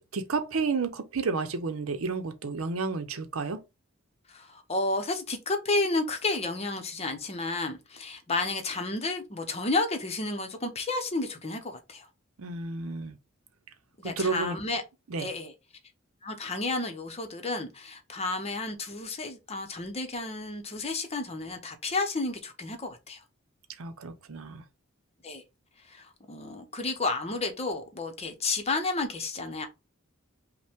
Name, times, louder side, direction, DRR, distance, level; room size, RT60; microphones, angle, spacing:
voice 1, 0.0-3.6 12.4-13.2 14.0-14.6 15.1-15.3 23.8-24.6, right 4 dB, 85° right, 0.7 m, -31 dB
voice 2, 4.3-12.1 14.0-14.8 15.2-15.5 16.2-23.2 25.2-25.4 25.9-29.7, left 3 dB, 30° left, 0.7 m, -31 dB
5.4 x 2.2 x 3.5 m
head